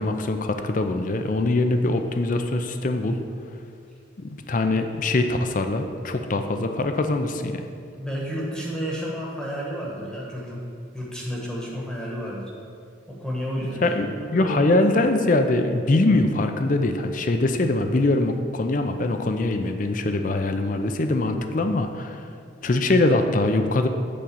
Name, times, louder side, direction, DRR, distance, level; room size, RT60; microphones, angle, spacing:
voice 1, 0.0-3.2 4.2-7.6 13.8-22.2 22.6-23.9, left 2 dB, 40° left, 6 dB, 0.5 m, -23 dB
voice 2, 7.9-10.6 10.9-12.5 13.1-14.7, equal, 5° left, -4 dB, 1.1 m, -31 dB
8.6 x 3.8 x 6.9 m, 2.3 s
head